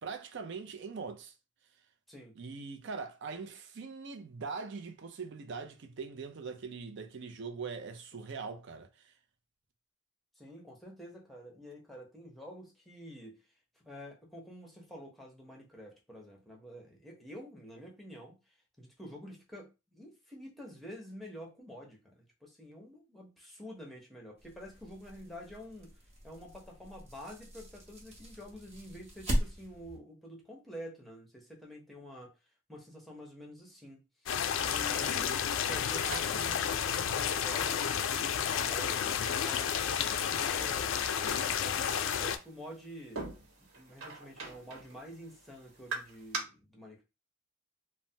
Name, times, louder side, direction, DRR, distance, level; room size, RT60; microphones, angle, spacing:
voice 1, 0.0-1.3 2.4-9.1, right 5 dB, 60° right, 0.5 m, -42 dB
voice 2, 2.1-2.4 10.4-13.4 13.9-25.9 26.2-32.4 32.7-43.2 43.6-47.0, equal, ahead, 0.7 m, -48 dB
sound 1, 24.4-30.0, equal, 35° right, 0.9 m, -39 dB
sound 2, 34.3-42.4, left 8 dB, 65° left, 0.3 m, -31 dB
sound 3, 35.0-46.4, right 3 dB, 85° right, 1.1 m, -47 dB
3.2 x 2.1 x 2.6 m
head